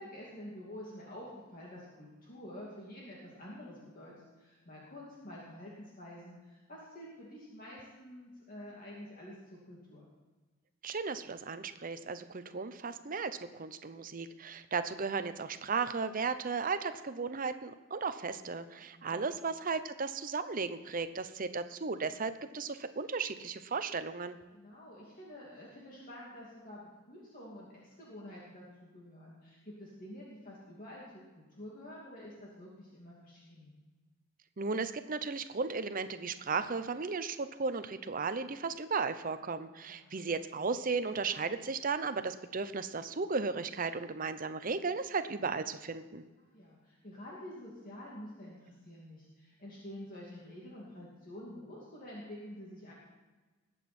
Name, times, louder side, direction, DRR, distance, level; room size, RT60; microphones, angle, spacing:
voice 1, 0.0-10.0 18.9-19.2 24.5-33.7 39.8-40.1 46.5-52.9, left 1 dB, 45° left, -5 dB, 2.5 m, -48 dB
voice 2, 10.8-24.4 34.6-46.2, right 4 dB, 45° right, 11 dB, 0.7 m, -35 dB
20.0 x 8.3 x 4.3 m, 1.3 s
head